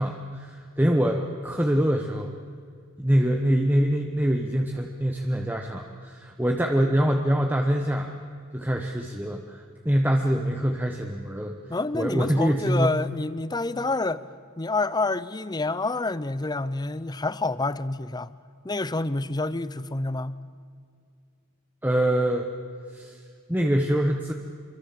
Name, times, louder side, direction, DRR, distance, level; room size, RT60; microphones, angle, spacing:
voice 1, 0.0-2.3 3.0-8.1 8.5-11.5 11.9-13.0 21.8-22.5 22.9-23.2 23.5-24.3, equal, 10° right, 3 dB, 1.1 m, -24 dB
voice 2, 11.7-14.2 14.6-18.3 18.6-20.4, left 2 dB, 20° left, 16 dB, 0.6 m, -28 dB
26.5 x 24.0 x 7.6 m, 2.3 s
head